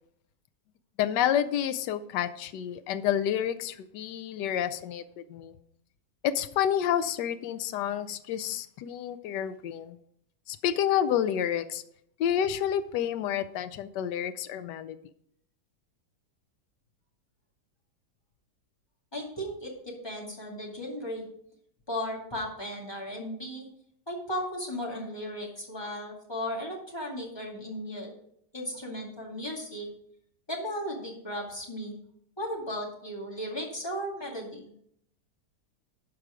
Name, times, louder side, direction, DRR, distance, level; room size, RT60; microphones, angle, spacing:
voice 1, 1.0-5.5 6.3-10.0 10.5-11.8 12.2-15.0, left 10 dB, 80° left, 11 dB, 1.2 m, -29 dB
voice 2, 19.1-21.2 21.9-23.7 24.1-28.1 28.5-29.9 30.5-31.9 32.4-34.7, equal, 15° left, -2 dB, 2.3 m, -36 dB
12.0 x 4.8 x 5.1 m, 0.68 s
omnidirectional pair, 1.8 m